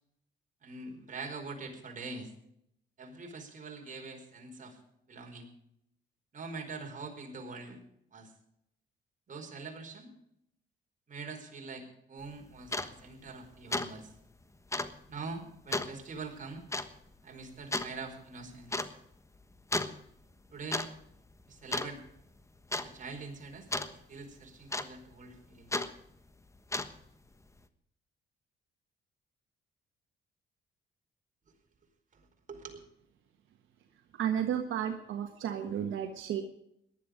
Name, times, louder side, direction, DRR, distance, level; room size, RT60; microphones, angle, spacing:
voice 1, 0.6-2.3 3.0-4.8 5.1-5.5 6.3-7.8 8.1-8.3 9.3-10.1 11.1-14.1 15.1-16.6 17.2-18.9 20.5-20.9 21.5-22.0 22.7-23.7 24.1-25.8 32.1-32.8, right 3 dB, 40° right, 2 dB, 4.7 m, -44 dB
sound 1, 12.2-12.3 12.7-12.9 13.3-13.5 13.7-13.9 14.2-14.3 14.7-14.9 15.7-15.9 16.7-16.9 17.7-17.9 18.7-18.9 19.7-20.0 20.5-20.9 21.1-21.4 21.7-22.2 22.7-22.9 23.7-23.9 24.7-25.1 25.7-25.9 26.6-27.1, left 2 dB, 15° left, 1.2 m, -33 dB
voice 2, 34.2-36.4, right 9 dB, 75° right, 5 dB, 1.5 m, -32 dB
18.0 x 11.5 x 5.1 m, 0.76 s
cardioid pair, 90°, 20 cm